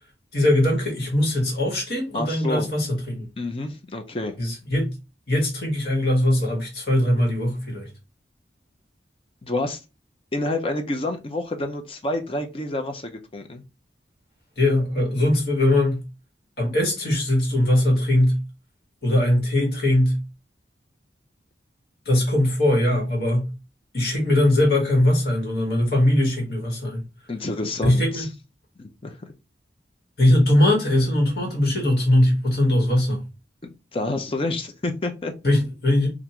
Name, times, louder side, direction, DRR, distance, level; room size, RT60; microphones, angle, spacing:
voice 1, 0.3-3.3 4.4-5.0 5.3-7.9 14.6-16.0 16.6-18.4 19.0-20.2 22.0-23.5 23.9-27.0 27.8-28.3 30.2-33.2 35.4-36.1, left 1 dB, 60° left, 1.5 m, -21 dB
voice 2, 2.1-2.7 3.4-4.4 9.4-9.8 10.3-13.6 27.3-28.3 28.8-29.2 33.9-35.3, left 2 dB, 30° left, 0.5 m, -28 dB
3.5 x 2.5 x 2.9 m
head